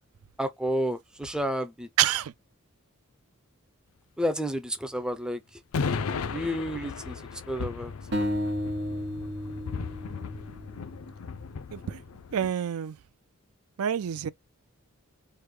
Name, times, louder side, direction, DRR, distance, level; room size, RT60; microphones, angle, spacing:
voice 1, 0.4-1.9 4.2-5.4 6.3-7.2 7.5-7.9, equal, 5° right, 0.3 m, -30 dB
voice 2, 2.0-2.3 11.7-12.0 12.3-13.0 13.8-14.3, right 10 dB, 85° right, 0.4 m, -27 dB
sound 1, 5.7-12.5, left 5 dB, 75° left, 0.4 m, -36 dB
sound 2, 8.1-11.3, equal, 50° right, 1.0 m, -33 dB
3.3 x 2.1 x 3.1 m
head